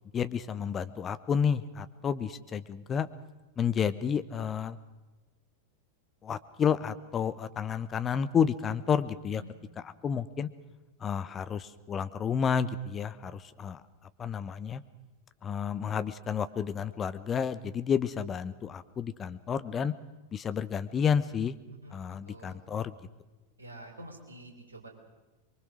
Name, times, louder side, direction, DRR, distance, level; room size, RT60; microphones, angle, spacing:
voice 1, 0.1-3.1 3.6-4.8 6.2-9.4 9.8-10.5 11.0-13.8 14.2-14.8 15.4-19.9 20.3-21.6 21.9-22.9, left 7 dB, 25° left, 13 dB, 1.0 m, -30 dB
voice 2, 21.8-22.6 23.6-24.9, right 1 dB, 75° right, 3 dB, 4.1 m, -48 dB
24.0 x 23.0 x 6.4 m, 1.1 s
figure-of-eight pair, 90°, 0 cm